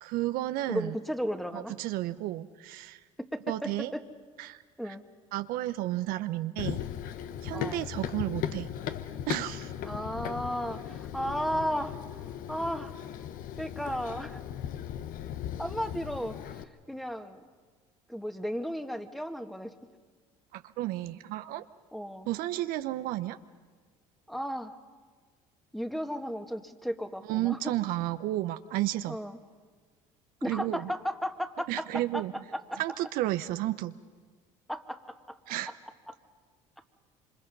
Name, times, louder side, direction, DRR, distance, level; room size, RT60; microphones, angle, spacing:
voice 1, 0.0-1.0 1.5-3.0 3.5-3.9 4.4-4.6 5.3-6.8 7.4-8.7 9.3-9.7 20.5-21.6 22.3-23.4 27.3-29.2 30.4-30.9 31.7-32.3 32.8-33.9 35.5-35.7, right 15 dB, 70° right, 11 dB, 0.8 m, -32 dB
voice 2, 0.7-1.7 3.3-4.0 4.8-5.0 7.5-7.8 9.8-12.0 12.5-12.9 13.6-14.4 15.6-17.4 18.1-19.7 21.9-22.3 24.3-24.8 25.7-27.7 29.1-29.4 30.4-32.2 32.5-32.8 34.7-35.4 36.1-36.2, equal, ahead, 7 dB, 1.7 m, -34 dB
Run, 6.6-16.6, left 10 dB, 65° left, 1.1 m, -37 dB
27.0 x 25.5 x 5.4 m, 1.5 s
supercardioid pair, 80°, 15 cm